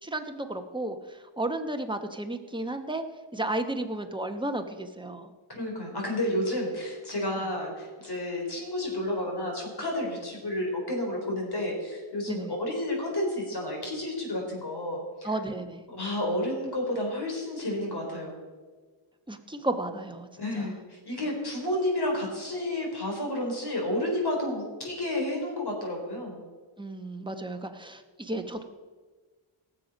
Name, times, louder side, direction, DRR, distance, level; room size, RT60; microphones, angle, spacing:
voice 1, 0.0-1.0 1.4-3.0 3.3-5.3 12.3-12.5 15.2-15.8 19.3-20.3 20.5-20.7 26.8-28.6, right 2 dB, 10° right, 6 dB, 1.0 m, -33 dB
voice 2, 5.5-15.3 15.9-18.3 20.4-26.4, left 1 dB, 50° left, 0 dB, 3.9 m, -31 dB
18.0 x 7.5 x 5.2 m, 1.4 s
wide cardioid pair, 95°, 50 cm